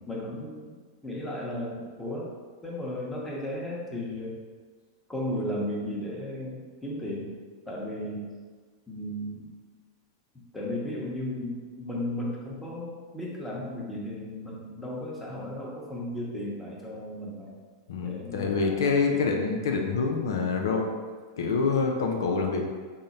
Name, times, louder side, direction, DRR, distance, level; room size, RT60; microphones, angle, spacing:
voice 1, 0.1-2.3 2.6-4.4 5.1-7.3 7.7-8.2 8.9-9.4 10.5-17.5 18.0-18.8 19.1-19.3, left 1 dB, 5° left, -5 dB, 0.9 m, -35 dB
voice 2, 17.9-20.9 21.4-22.7, left 4 dB, 80° left, 2 dB, 0.4 m, -26 dB
3.7 x 2.1 x 4.1 m, 1.5 s
hypercardioid pair, 120°, 2 cm